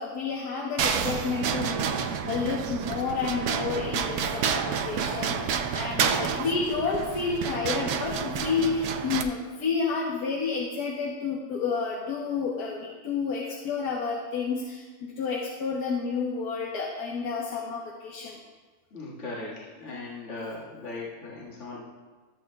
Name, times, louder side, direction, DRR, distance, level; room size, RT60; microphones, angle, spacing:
voice 1, 0.0-18.4, left 5 dB, 65° left, -3 dB, 1.4 m, -30 dB
sound 1, 0.8-9.2, right 7 dB, 70° right, 1.1 m, -29 dB
voice 2, 18.9-21.8, left 3 dB, 45° left, -7 dB, 1.9 m, -38 dB
14.5 x 7.7 x 2.2 m, 1.3 s
omnidirectional pair, 1.8 m